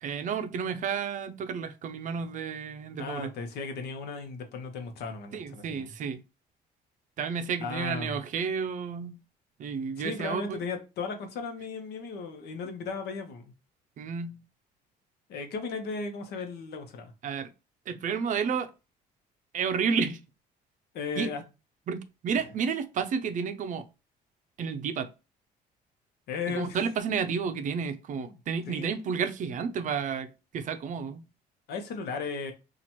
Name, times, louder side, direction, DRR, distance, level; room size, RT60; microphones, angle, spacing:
voice 1, 0.0-3.3 5.3-6.2 7.2-9.2 9.6-10.6 14.0-14.4 17.2-17.5 17.9-18.7 19.5-20.2 21.2-21.3 21.9-23.9 24.6-25.1 26.5-31.2, right 6 dB, 50° right, 0.5 m, -31 dB
voice 2, 3.0-5.9 7.6-8.2 10.0-13.5 15.3-17.1 20.9-21.4 22.3-22.4 26.3-26.8 28.3-28.4 28.7-28.9 31.7-32.5, left 5 dB, 70° left, 0.9 m, -36 dB
2.9 x 2.4 x 4.2 m
cardioid pair, 110°, 17 cm